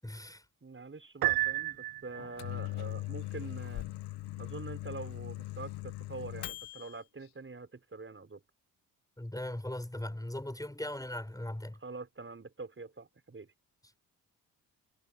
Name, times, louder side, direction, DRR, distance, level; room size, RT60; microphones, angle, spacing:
voice 1, 0.0-0.4 9.2-11.8, left 1 dB, 10° left, 6.7 m, -39 dB
voice 2, 0.6-3.9 4.4-8.4 11.8-13.5, right 3 dB, 30° right, 5.5 m, -45 dB
Piano, 1.2-2.5, right 15 dB, 60° right, 0.8 m, -31 dB
Microwave oven, 2.1-7.0, left 17 dB, 70° left, 1.3 m, -40 dB
supercardioid pair, 55°, 41 cm